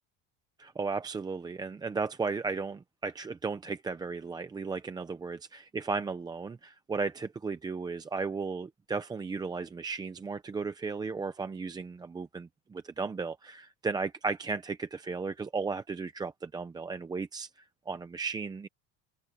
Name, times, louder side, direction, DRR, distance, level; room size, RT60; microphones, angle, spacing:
voice 1, 0.6-18.7, right 4 dB, 10° right, 0.5 m, -35 dB
open air
cardioid pair, 160°, 39 cm